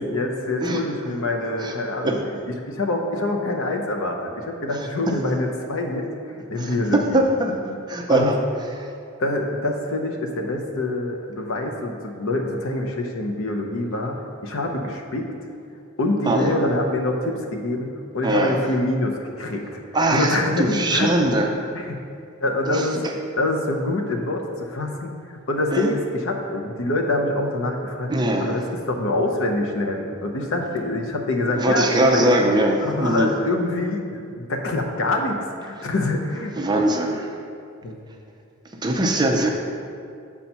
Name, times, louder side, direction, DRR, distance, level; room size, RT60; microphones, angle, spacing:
voice 1, 0.0-7.2 8.1-8.4 9.2-15.3 16.0-19.7 20.1-21.2 21.7-22.0 22.4-23.1 23.4-28.1 28.4-32.3 32.8-36.7 37.8-38.0, left 2 dB, 70° left, 2 dB, 0.8 m, -25 dB
voice 2, 6.6-8.4 8.8-8.9 16.3-16.7 18.2-18.6 19.9-21.5 22.7-22.9 25.7-25.9 28.1-28.6 31.5-33.3 36.6-37.3 38.8-39.5, right 1 dB, 20° right, 1 dB, 0.6 m, -21 dB
7.1 x 4.4 x 5.5 m, 2.5 s
head